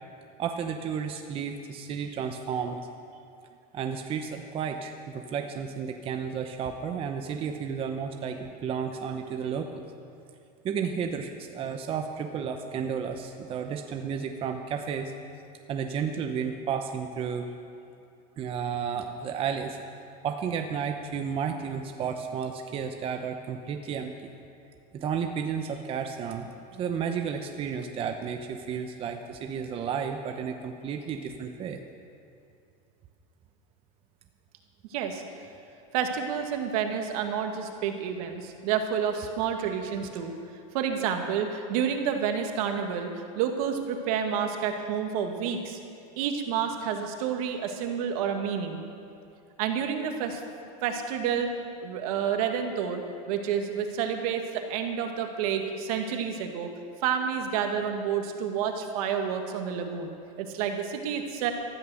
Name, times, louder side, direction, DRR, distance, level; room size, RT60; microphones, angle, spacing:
voice 1, 0.4-2.8 3.7-9.8 10.6-15.1 15.7-17.5 18.4-19.8 20.2-24.1 24.9-31.8, right 7 dB, 25° right, 5 dB, 0.8 m, -32 dB
voice 2, 34.9-35.2 35.9-40.3 40.7-43.1 43.4-45.8 46.2-48.8 49.6-50.4 50.8-51.5 51.8-56.7 57.0-61.5, right 7 dB, 65° right, 5 dB, 1.9 m, -29 dB
15.0 x 13.0 x 6.3 m, 2.6 s
supercardioid pair, 145°, 20 cm